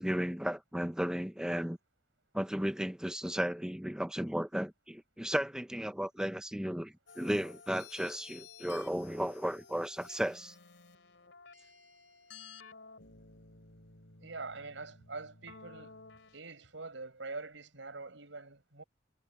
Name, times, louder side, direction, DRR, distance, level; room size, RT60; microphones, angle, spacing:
voice 1, 0.0-1.8 2.3-10.5, equal, 5° right, 0.7 m, -34 dB
sound 1, 7.1-16.4, left 5 dB, 80° left, 3.7 m, -54 dB
voice 2, 14.2-16.1 16.3-18.8, right 3 dB, 85° right, 5.1 m, -44 dB
head